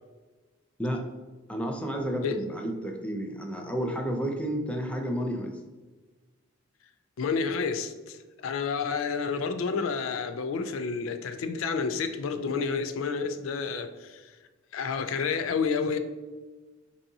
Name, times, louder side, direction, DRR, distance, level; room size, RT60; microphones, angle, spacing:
voice 1, 1.5-5.6, equal, 5° left, 0.4 m, -31 dB
voice 2, 7.2-14.3 14.7-16.0, left 5 dB, 70° left, 0.4 m, -30 dB
5.1 x 2.7 x 2.7 m
head